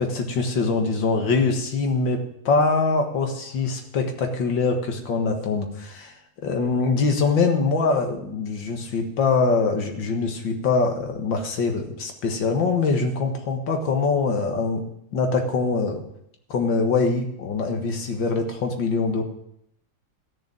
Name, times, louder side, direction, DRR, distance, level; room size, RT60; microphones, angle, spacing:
voice 1, 0.0-6.1 6.4-16.0 16.5-19.2, left 4 dB, 85° left, 4 dB, 2.4 m, -23 dB
13.5 x 6.9 x 8.7 m, 0.76 s
omnidirectional pair, 2.0 m